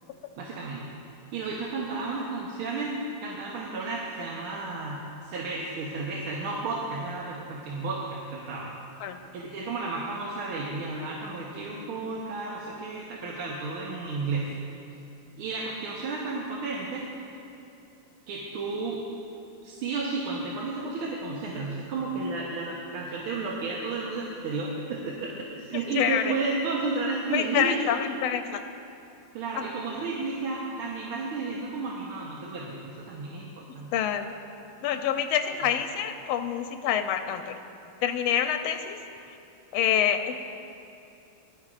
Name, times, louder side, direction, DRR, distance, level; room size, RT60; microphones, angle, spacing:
voice 1, 0.4-0.8 1.3-8.7 9.3-14.5 15.4-17.1 18.3-19.0 19.6-25.3 25.6-27.9 29.3-33.9, right 3 dB, 85° right, -4 dB, 1.9 m, -32 dB
voice 2, 25.9-26.3 27.3-28.6 33.9-34.3 34.8-37.5 38.0-39.0 39.7-40.4, left 9 dB, 85° left, 7 dB, 1.4 m, -26 dB
17.5 x 12.0 x 2.4 m, 2.7 s
omnidirectional pair, 2.3 m